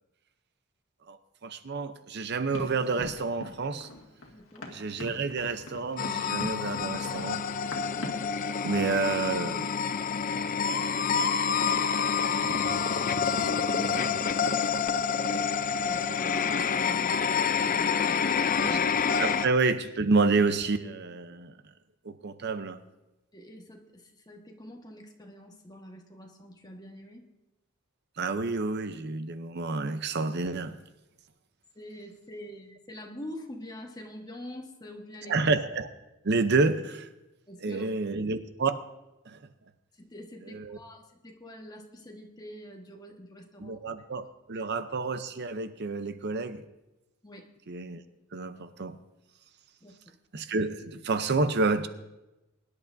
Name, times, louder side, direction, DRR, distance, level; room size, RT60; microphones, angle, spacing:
voice 1, 1.1-3.9 4.7-7.4 8.6-9.7 12.2-14.0 18.6-18.8 19.2-21.5 22.0-22.8 28.2-30.8 35.3-35.9 36.2-37.1 37.6-38.8 39.3-39.4 40.5-40.8 43.6-46.6 47.7-48.0 48.3-49.0 50.3-51.9, right 3 dB, 55° right, 10 dB, 0.7 m, -29 dB
Run, 2.5-8.3, left 2 dB, 75° left, 1.9 m, -42 dB
voice 2, 4.3-4.7 15.7-18.8 23.3-27.2 31.7-35.3 37.5-37.9 39.9-43.9 44.5-44.6 47.2-47.5 49.8-50.2, left 1 dB, 20° left, 2 dB, 1.5 m, -45 dB
sound 1, 6.0-19.5, left 6 dB, 40° left, 0.5 m, -28 dB
23.0 x 11.0 x 2.7 m, 0.97 s
head